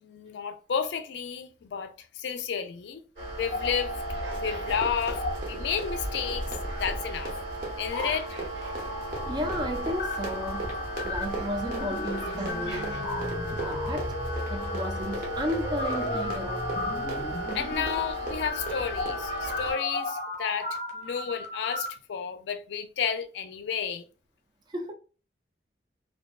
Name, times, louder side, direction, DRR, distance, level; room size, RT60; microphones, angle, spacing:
voice 1, 0.0-3.0 3.4-4.0 4.4-6.5 6.8-7.3 7.8-8.3 17.5-24.0, left 7 dB, 80° left, 0.4 m, -32 dB
sound 1, 3.2-19.7, right 1 dB, 80° right, 1.4 m, -37 dB
sound 2, 3.4-4.8 5.0-5.3 5.9-21.9, left 2 dB, 40° left, 0.7 m, -35 dB
Run, 3.9-19.3, right 2 dB, 50° right, 0.7 m, -40 dB
voice 2, 9.2-10.7 11.0-13.0 13.5-14.1 14.5-16.7 24.7-24.9, equal, 25° right, 0.3 m, -33 dB
2.6 x 2.1 x 2.3 m
head